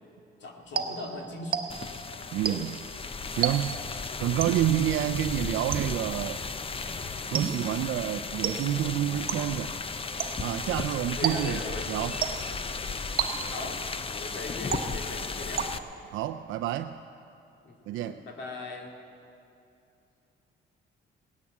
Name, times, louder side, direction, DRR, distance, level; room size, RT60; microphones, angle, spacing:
voice 1, 0.4-1.7 5.0-5.2 11.2-11.9 13.5-15.7 17.6-17.7 18.0-18.9, left 2 dB, 65° left, 1 dB, 2.3 m, -39 dB
sound 1, 0.8-2.0 2.5-2.9 3.4-3.9 4.4-4.8 5.7-6.2 7.3-7.8 8.4-8.9 9.3-9.7 10.2-10.6 11.2-11.7 12.2-12.7 13.2-13.7 14.7-15.2 15.6-16.1, right 7 dB, 50° right, 1.0 m, -32 dB
sound 2, 1.7-15.8, left 4 dB, 30° left, 0.7 m, -35 dB
voice 2, 2.3-2.8 3.3-3.8 4.2-6.4 7.3-9.7 10.4-11.6 11.9-12.1 16.1-17.0 17.9-18.2, right 12 dB, 85° right, 7 dB, 0.5 m, -28 dB
18.0 x 11.0 x 7.4 m, 2.7 s
cardioid pair, 90°, 20 cm